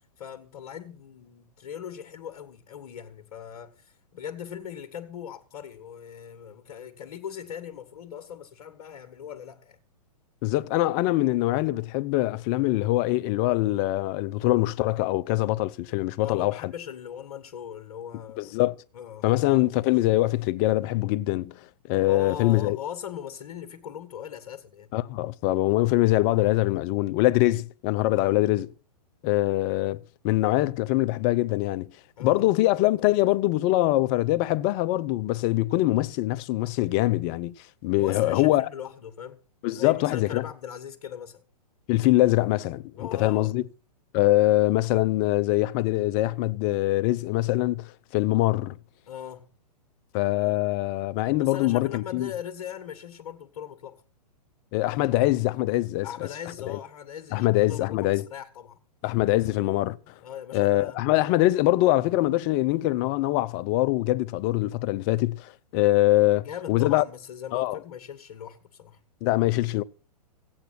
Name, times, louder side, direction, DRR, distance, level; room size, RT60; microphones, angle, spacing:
voice 1, 0.2-9.8 16.2-18.5 18.9-19.3 22.0-24.9 28.1-28.3 32.2-32.4 38.0-39.4 39.7-41.4 43.0-43.5 49.1-49.5 51.4-54.0 56.0-58.8 60.2-61.0 66.4-69.0, left 9 dB, 60° left, 1.7 m, -39 dB
voice 2, 10.4-16.7 18.4-18.7 19.2-21.6 21.9-22.8 24.9-28.7 29.2-31.9 32.2-37.5 37.8-38.7 39.6-40.4 41.9-43.6 44.1-48.8 50.1-52.3 54.7-56.1 56.7-56.8 57.3-58.3 59.0-60.1 60.5-67.0 67.5-67.8 69.2-69.8, left 17 dB, 35° left, 0.7 m, -23 dB
16.5 x 8.8 x 6.0 m
hypercardioid pair, 120°, 21 cm